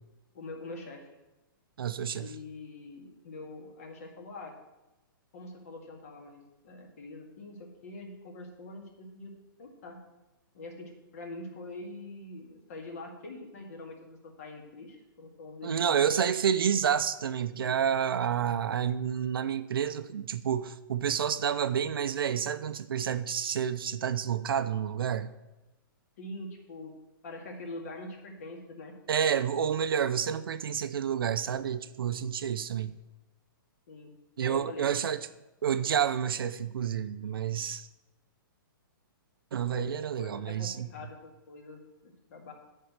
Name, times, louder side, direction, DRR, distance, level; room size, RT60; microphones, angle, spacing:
voice 1, 0.3-1.1 2.1-4.5 5.3-10.0 10.5-16.1 26.2-27.0 27.2-28.9 33.9-34.1 34.4-34.9 39.7-42.5, left 2 dB, 40° left, 2.0 m, -44 dB
voice 2, 1.8-2.3 15.6-25.3 29.1-32.9 34.4-35.2 35.6-37.9 39.5-40.9, right 8 dB, 80° right, 0.7 m, -29 dB
11.0 x 4.6 x 8.1 m
hypercardioid pair, 175°, 12 cm